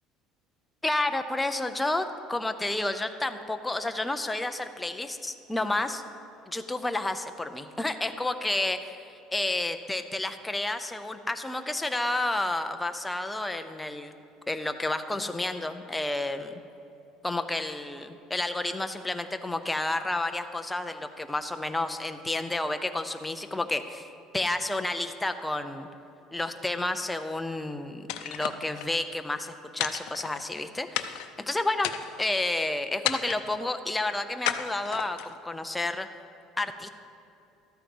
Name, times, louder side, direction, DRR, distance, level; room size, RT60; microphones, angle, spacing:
voice 1, 0.8-6.0 6.5-9.1 9.3-14.1 14.5-16.5 17.2-24.1 24.3-25.9 26.3-31.9 32.2-36.1 36.6-36.9, left 2 dB, 5° left, 8 dB, 0.5 m, -30 dB
sound 1, 28.1-29.0 29.8-30.6 30.9-31.4 31.8-32.4 33.0-33.6 34.4-35.4, left 13 dB, 75° left, 0.5 m, -33 dB
13.0 x 8.9 x 5.3 m, 2.8 s
cardioid pair, 165°, 0 cm